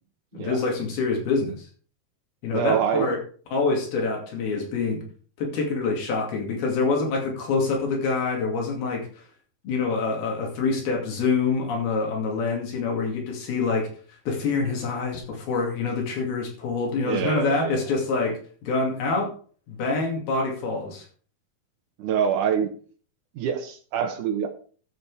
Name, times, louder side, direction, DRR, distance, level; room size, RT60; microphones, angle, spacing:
voice 1, 0.3-1.7 2.4-3.2 3.5-5.0 5.4-9.2 9.6-13.9 14.3-19.3 19.7-21.1, left 4 dB, 90° left, 0 dB, 4.4 m, -26 dB
voice 2, 2.5-3.2 17.0-17.9 22.0-22.7 23.4-24.5, right 8 dB, 70° right, 7 dB, 2.2 m, -26 dB
13.5 x 6.2 x 4.9 m, 0.43 s
omnidirectional pair, 4.2 m